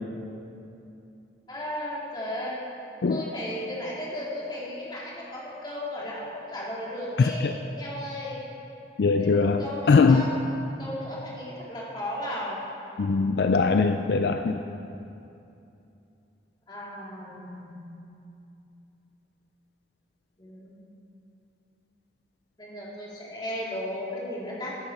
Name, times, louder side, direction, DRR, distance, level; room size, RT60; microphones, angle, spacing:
voice 1, 1.5-2.6 3.1-8.4 9.2-10.3 10.8-12.6 16.7-17.8 20.4-20.8 22.6-24.8, left 1 dB, 25° left, -5 dB, 2.3 m, -35 dB
voice 2, 7.2-7.5 9.0-10.3 13.0-14.6, left 4 dB, 65° left, 7 dB, 0.4 m, -21 dB
13.5 x 10.5 x 4.5 m, 2.7 s
head